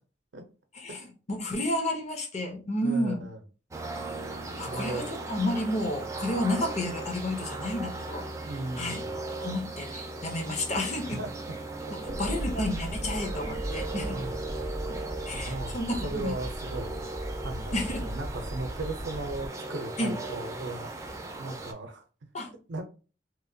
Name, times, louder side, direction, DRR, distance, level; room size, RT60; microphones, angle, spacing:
voice 1, 0.8-3.3 4.6-8.3 8.8-9.0 9.4-11.2 12.2-14.2 15.3-16.4 17.7-18.0 20.0-20.1 22.3-22.5, left 1 dB, 40° left, 0.6 m, -31 dB
voice 2, 2.8-3.4 4.6-5.1 8.4-9.2 11.1-11.3 11.9-12.2 14.0-14.3 14.9-15.0 15.3-17.0 17.4-17.7 18.0-22.3 22.7-22.8, right 2 dB, 85° right, 0.5 m, -37 dB
sound 1, 3.7-21.7, right 2 dB, 15° right, 0.3 m, -38 dB
sound 2, 12.0-19.5, equal, 65° left, 1.3 m, -37 dB
2.9 x 2.1 x 2.6 m
head